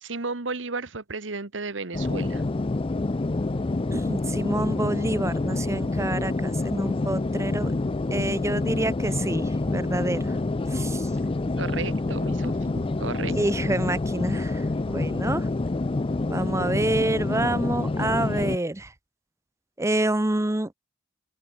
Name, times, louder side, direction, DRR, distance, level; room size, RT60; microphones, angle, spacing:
voice 1, 0.0-2.4 11.6-13.4, right 3 dB, 75° right, 1.6 m, -33 dB
sound 1, 1.9-18.6, left 2 dB, 30° left, 0.5 m, -27 dB
voice 2, 3.9-7.7 8.1-10.4 10.7-11.1 13.3-15.5 16.3-18.9 19.8-20.7, right 1 dB, 15° right, 0.9 m, -28 dB
head